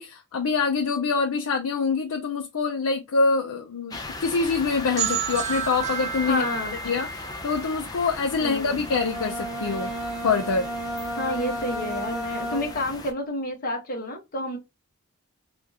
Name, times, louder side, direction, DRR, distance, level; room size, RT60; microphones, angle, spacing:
voice 1, 0.0-6.4 6.8-9.9 10.2-10.7, left 4 dB, 75° left, 0.5 m, -25 dB
sound 1, 3.9-13.1, left 2 dB, 15° left, 0.5 m, -38 dB
sound 2, 5.0-8.6, right 8 dB, 30° right, 0.5 m, -31 dB
voice 2, 6.3-6.8 8.4-8.8 11.2-14.6, left 1 dB, 40° left, 1.1 m, -29 dB
Bowed string instrument, 8.8-13.0, right 1 dB, ahead, 1.1 m, -33 dB
3.5 x 2.4 x 2.8 m
head